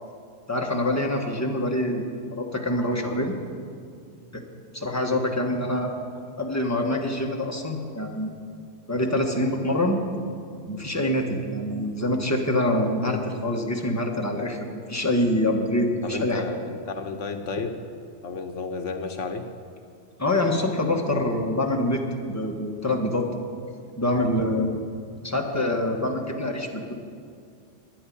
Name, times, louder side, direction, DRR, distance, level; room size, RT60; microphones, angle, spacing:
voice 1, 0.5-2.1 2.4-3.4 4.3-4.4 4.7-5.9 6.4-8.4 8.9-10.0 10.7-16.4 20.2-23.3 24.0-24.8 25.2-26.9, left 1 dB, 15° left, 1 dB, 1.3 m, -25 dB
voice 2, 16.0-17.7 18.2-19.5, left 4 dB, 75° left, 5 dB, 1.3 m, -32 dB
10.0 x 9.3 x 10.0 m, 2.3 s
omnidirectional pair, 1.3 m